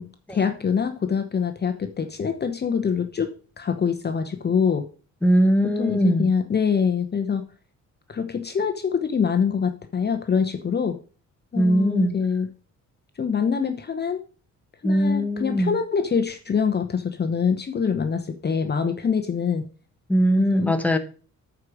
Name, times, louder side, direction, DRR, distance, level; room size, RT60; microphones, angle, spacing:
voice 1, 0.0-3.3 3.6-4.9 5.6-7.5 8.1-11.0 11.5-12.5 13.2-14.2 14.8-19.7 20.5-20.7, left 6 dB, 35° left, 0.9 m, -24 dB
voice 2, 5.2-6.3 11.5-12.2 14.8-15.7 20.1-21.0, equal, 5° left, 1.2 m, -20 dB
8.2 x 4.9 x 6.4 m
cardioid pair, 90°, 30 cm